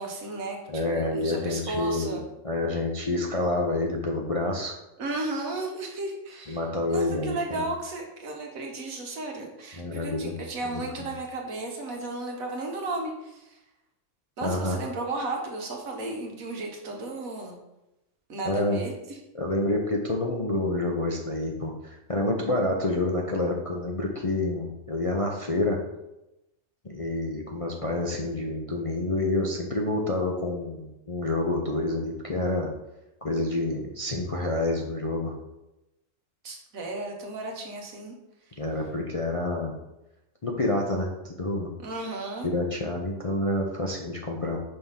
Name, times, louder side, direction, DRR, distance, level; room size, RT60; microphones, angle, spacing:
voice 1, 0.0-0.6 0.9-2.2 5.0-6.6 6.9-13.6 14.4-17.6 18.3-18.9 36.4-38.1 41.8-42.5, right 2 dB, 75° right, 1 dB, 1.6 m, -34 dB
voice 2, 0.7-4.7 6.5-7.7 9.8-10.3 11.0-11.1 14.4-14.8 18.4-18.8 19.3-25.8 26.8-32.7 33.2-35.3 38.6-39.8 40.4-41.7 42.4-44.6, left 2 dB, 35° left, -1 dB, 0.5 m, -28 dB
5.5 x 3.6 x 5.7 m, 0.93 s
omnidirectional pair, 1.5 m